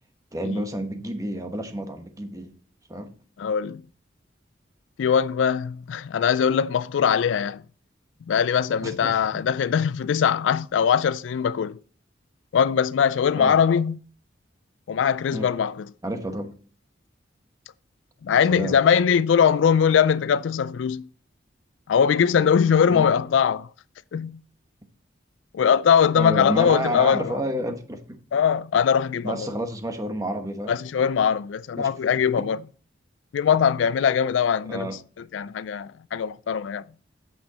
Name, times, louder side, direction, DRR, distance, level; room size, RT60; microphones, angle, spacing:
voice 1, 0.3-2.5 2.9-3.1 8.8-9.4 13.3-13.6 15.3-15.5 16.0-16.5 18.4-18.8 22.9-23.1 26.1-28.2 29.2-30.7 31.8-31.9 32.4-32.5 34.7-35.0, right 1 dB, 20° right, 1.1 m, -30 dB
voice 2, 3.4-3.8 5.0-7.6 8.3-11.8 12.5-14.0 14.9-15.8 18.2-21.1 21.9-23.7 24.1-24.4 25.5-27.4 28.3-29.5 30.7-32.6 33.3-34.9 35.3-36.8, left 7 dB, 85° left, 0.4 m, -21 dB
8.8 x 7.2 x 4.0 m
head